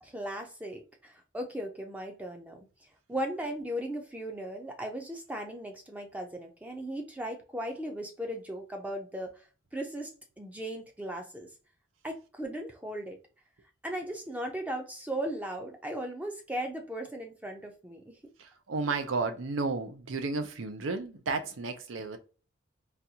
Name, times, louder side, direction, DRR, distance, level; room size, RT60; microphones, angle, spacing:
voice 1, 0.0-9.5 9.7-11.5 12.0-13.2 13.8-18.2, right 1 dB, 10° right, 0.4 m, -37 dB
voice 2, 18.4-22.2, right 3 dB, 85° right, 0.6 m, -33 dB
4.1 x 2.3 x 2.7 m
head